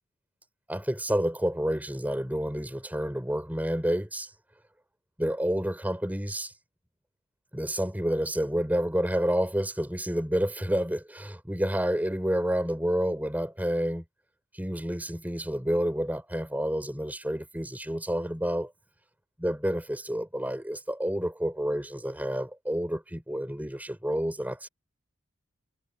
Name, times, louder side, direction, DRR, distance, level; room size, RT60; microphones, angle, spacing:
voice 1, 0.7-4.3 5.2-6.5 7.5-14.0 14.5-18.7 19.4-24.7, equal, 10° right, 3.7 m, -29 dB
head